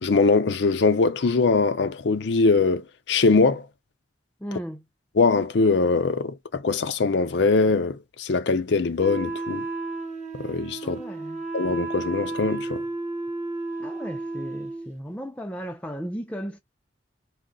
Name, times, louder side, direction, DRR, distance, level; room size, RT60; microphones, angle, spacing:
voice 1, 0.0-3.7 5.2-9.7 10.3-11.0 11.5-12.8, left 4 dB, 65° left, 0.5 m, -22 dB
voice 2, 4.4-4.8 10.8-11.5 13.8-16.6, equal, 5° left, 0.4 m, -35 dB
Wind instrument woodwind instrument, 9.0-14.9, right 2 dB, 35° right, 0.8 m, -32 dB
2.3 x 2.1 x 3.8 m
head